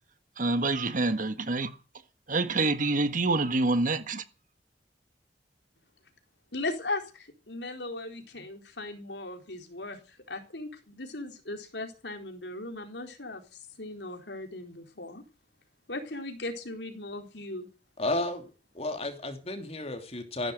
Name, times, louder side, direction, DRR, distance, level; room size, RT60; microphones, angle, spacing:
voice 1, 0.4-1.7 2.3-4.2, right 2 dB, 50° right, 1.6 m, -26 dB
voice 2, 6.5-15.2 15.9-17.7, left 2 dB, 75° left, 4.1 m, -38 dB
voice 3, 18.0-18.5 18.7-20.5, left 2 dB, 35° left, 2.9 m, -32 dB
15.5 x 12.0 x 7.8 m
head